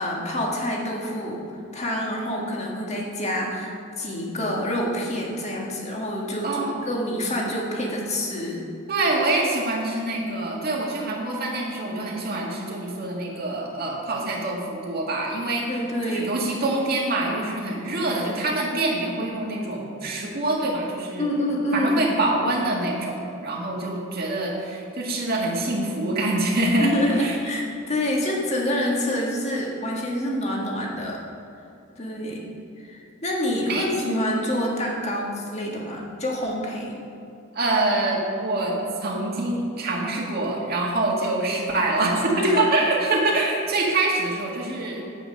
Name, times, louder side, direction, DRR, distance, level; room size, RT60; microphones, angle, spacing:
voice 1, 0.0-1.4 1.7-8.7 15.7-16.4 21.2-21.9 26.8-31.2 32.0-32.4 32.8-37.0 42.4-42.7, equal, 30° left, -2 dB, 1.6 m, -27 dB
voice 2, 6.4-6.9 8.9-21.3 21.7-26.9 27.2-27.4 33.7-33.9 37.5-38.8 39.0-45.2, right 2 dB, 45° right, -2 dB, 1.8 m, -25 dB
9.0 x 8.0 x 5.3 m, 2.7 s
head